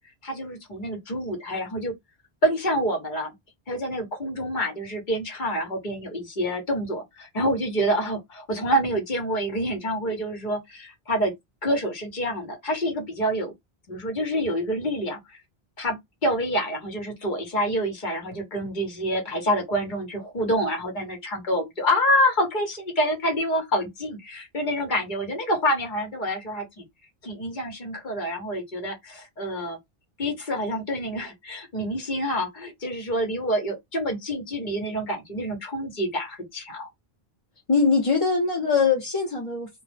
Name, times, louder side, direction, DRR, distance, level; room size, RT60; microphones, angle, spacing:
voice 1, 0.2-1.9 2.4-3.3 3.7-11.3 11.6-13.5 13.9-15.2 15.8-26.8 27.2-29.8 30.2-36.9, equal, 50° left, 1.1 m, -27 dB
voice 2, 37.7-39.7, left 4 dB, 35° left, 0.8 m, -22 dB
2.3 x 2.1 x 3.3 m
omnidirectional pair, 1.0 m